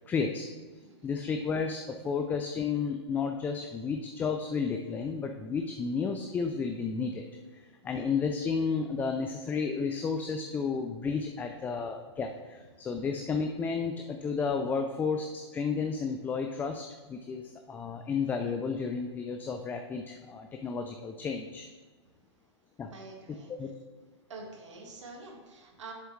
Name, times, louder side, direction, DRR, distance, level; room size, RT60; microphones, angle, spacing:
voice 1, 0.1-0.5 1.0-7.2 7.5-21.7 22.8-22.9 23.5-23.7, left 5 dB, 10° left, 5 dB, 0.3 m, -32 dB
voice 2, 0.8-1.2 7.8-8.0 13.0-13.1 22.9-23.7 24.3-25.9, right 3 dB, 80° right, 1 dB, 1.8 m, -47 dB
7.4 x 6.9 x 3.1 m, 1.4 s
hypercardioid pair, 130°, 15 cm